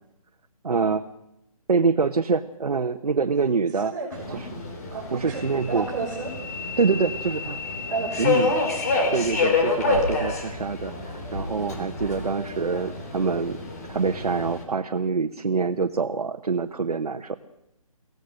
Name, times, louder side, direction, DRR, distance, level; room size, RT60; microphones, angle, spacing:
voice 1, 0.6-1.1 1.7-3.9 5.1-5.9 6.8-7.6 8.2-8.5 9.1-13.6 13.9-17.4, right 4 dB, 90° right, 6 dB, 1.3 m, -25 dB
voice 2, 3.7-4.5 4.9-6.3 7.9-8.5, right 4 dB, 30° right, -5 dB, 5.0 m, -32 dB
Subway metro underground, 4.1-14.6, left 3 dB, 25° left, 3.4 m, -28 dB
24.0 x 17.5 x 6.7 m, 0.84 s
hypercardioid pair, 175°, 19 cm